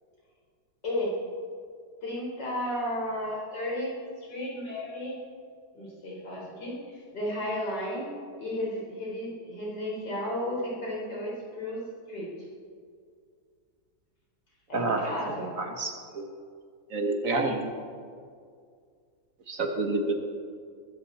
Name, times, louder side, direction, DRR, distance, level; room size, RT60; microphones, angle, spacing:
voice 1, 0.8-1.1 2.0-3.9 4.2-5.2 5.7-8.1 8.4-11.8 12.1-12.3 14.7-15.5, left 1 dB, 90° left, -4 dB, 5.1 m, -33 dB
voice 2, 15.6-16.3 16.9-17.7 19.5-20.1, right 3 dB, 55° right, 4 dB, 1.6 m, -28 dB
21.0 x 14.0 x 4.2 m, 2.2 s
omnidirectional pair, 1.8 m